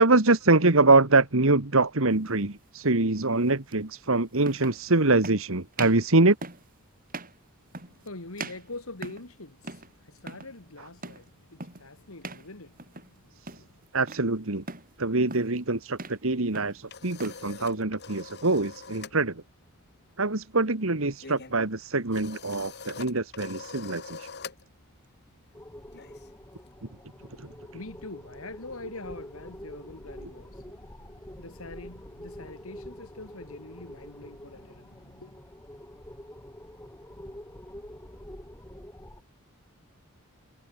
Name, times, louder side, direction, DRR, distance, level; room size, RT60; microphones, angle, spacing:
voice 1, 0.0-6.4 13.4-13.5 13.9-14.6 15.0-19.4 20.2-24.3 27.4-27.5, right 3 dB, 65° right, 1.8 m, -24 dB
sound 1, 2.2-2.4 3.7-3.8 4.4-4.8 5.2-5.4 5.7-6.1 6.4-6.7 7.1-7.4 7.7-8.1 8.4-9.3 9.6-9.9 10.2-10.5 11.0-11.3 11.6-11.9 12.2-12.5 12.8-13.2 13.5-14.3 14.7-14.9 15.3-15.6 15.9-16.2 16.5-17.4, right 3 dB, 40° right, 6.5 m, -40 dB
voice 2, 7.7-13.8 27.2-35.4, left 2 dB, 70° left, 2.7 m, -44 dB
sound 2, 16.5-19.2 19.5-19.8 20.0-26.7, left 5 dB, 50° left, 2.5 m, -45 dB
sound 3, 25.5-39.2, left 1 dB, 10° left, 2.4 m, -46 dB
head